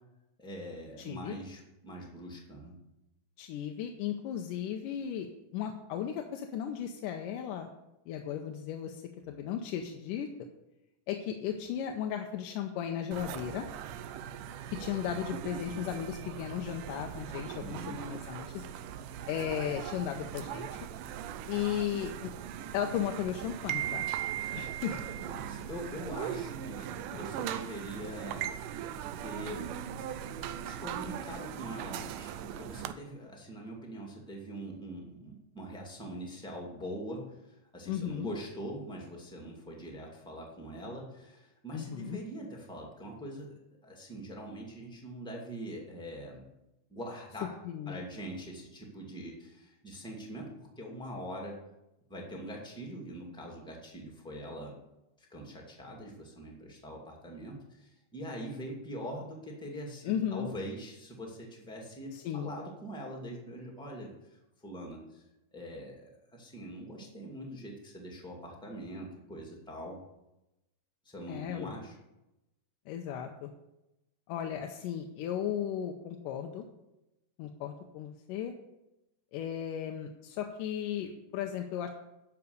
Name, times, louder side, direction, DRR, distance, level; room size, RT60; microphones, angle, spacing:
voice 1, 0.4-2.7 17.5-18.0 25.1-28.9 29.2-29.7 30.6-46.4 46.9-47.5 47.9-51.6 52.1-54.8 55.2-64.1 64.6-65.3 65.5-70.0 71.0-72.0, right 1 dB, ahead, -1 dB, 1.6 m, -43 dB
voice 2, 1.0-1.4 3.4-5.3 5.5-7.7 8.1-10.3 11.1-13.7 14.7-18.6 19.3-20.8 21.5-22.3 22.7-24.1 24.5-25.0 37.9-38.3 41.7-42.2 47.6-48.0 60.0-60.5 62.1-62.5 71.3-71.8 72.9-73.5 74.3-76.7 77.4-78.5 79.3-81.9, left 9 dB, 85° left, 3 dB, 2.3 m, -35 dB
sound 1, 13.1-32.9, right 10 dB, 85° right, 2.2 m, -39 dB
12.0 x 5.9 x 6.7 m, 0.93 s
omnidirectional pair, 3.8 m